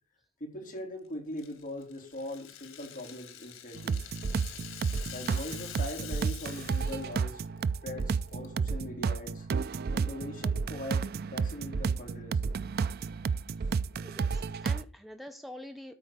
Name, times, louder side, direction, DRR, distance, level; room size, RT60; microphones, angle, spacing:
voice 1, 0.4-4.0 5.1-7.4 7.8-9.5 9.9-12.5, left 1 dB, 40° left, 3.3 m, -41 dB
Rattle (instrument), 1.4-7.2 7.5-7.6 8.0-8.5, left 10 dB, 90° left, 1.6 m, -46 dB
sound 1, 3.8-14.8, right 5 dB, 50° right, 0.4 m, -31 dB
voice 2, 14.0-15.9, left 1 dB, ahead, 0.7 m, -46 dB
13.0 x 4.4 x 6.6 m
head